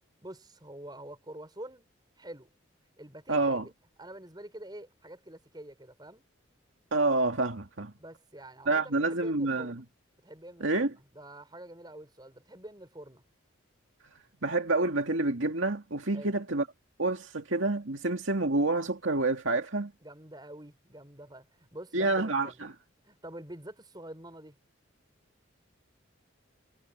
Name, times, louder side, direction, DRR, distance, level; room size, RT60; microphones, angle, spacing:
voice 1, 0.2-1.9 2.2-2.5 3.0-3.6 4.0-6.2 8.0-9.8 10.2-13.2 16.1-16.4 20.0-22.6 23.0-24.6, right 1 dB, 20° right, 5.9 m, -47 dB
voice 2, 3.3-3.7 6.9-7.9 8.7-9.8 10.6-10.9 14.4-16.7 17.0-19.9 21.9-22.7, right 2 dB, 70° right, 2.2 m, -28 dB
head